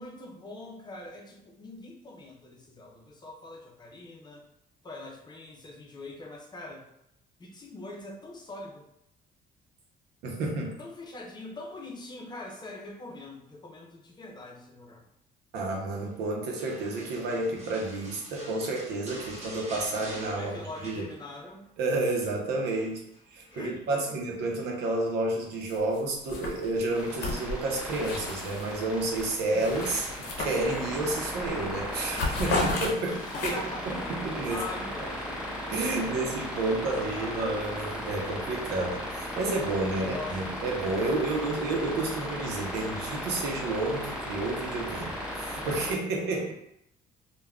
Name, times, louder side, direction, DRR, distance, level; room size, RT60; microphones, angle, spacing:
voice 1, 0.0-4.4 4.8-6.8 7.4-8.8 10.8-15.0 20.4-21.6 23.5-24.2 29.5-29.8 33.1-34.2 34.5-35.4 35.8-37.5 40.0-41.6, left 2 dB, 25° left, 0 dB, 0.6 m, -43 dB
voice 2, 10.2-10.8 15.5-20.5 20.8-21.1 21.8-23.0 23.3-33.2 33.4-33.5 34.1-34.6 35.7-46.5, right 2 dB, 80° right, 0 dB, 0.7 m, -30 dB
sound 1, 16.6-21.6 21.8-22.2 22.7-23.7 24.8-25.3 25.8-25.9, right 1 dB, 40° right, 1.0 m, -46 dB
sound 2, 25.7-26.0 26.3-28.7 29.1-31.0 31.4-31.6 31.9-33.8, left 3 dB, 75° left, 0.7 m, -33 dB
sound 3, 26.9-45.9, equal, 5° right, 1.2 m, -36 dB
3.5 x 2.2 x 2.2 m, 0.78 s
cardioid pair, 110°, 17 cm